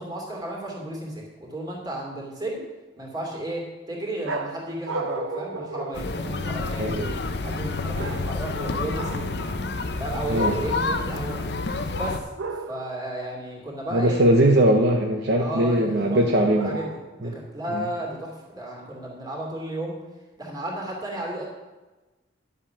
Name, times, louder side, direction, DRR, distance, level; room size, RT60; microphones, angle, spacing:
voice 1, 0.0-2.6 3.0-7.2 7.4-9.3 10.0-11.5 11.9-12.3 12.7-14.2 15.4-16.2 16.6-20.0 20.4-21.4, right 1 dB, 20° right, -2 dB, 2.6 m, -33 dB
sound 1, 4.2-6.8 7.9-8.6 8.9-9.4 12.4-13.0 16.6-17.3, right 3 dB, 85° right, 0.8 m, -34 dB
sound 2, 5.9-12.2, left 3 dB, 55° left, 0.7 m, -29 dB
voice 2, 6.8-7.1 10.3-10.6 13.9-16.8 17.2-17.4 17.7-17.8, right 1 dB, 55° right, 2 dB, 0.9 m, -20 dB
11.0 x 7.8 x 5.7 m, 1.1 s
head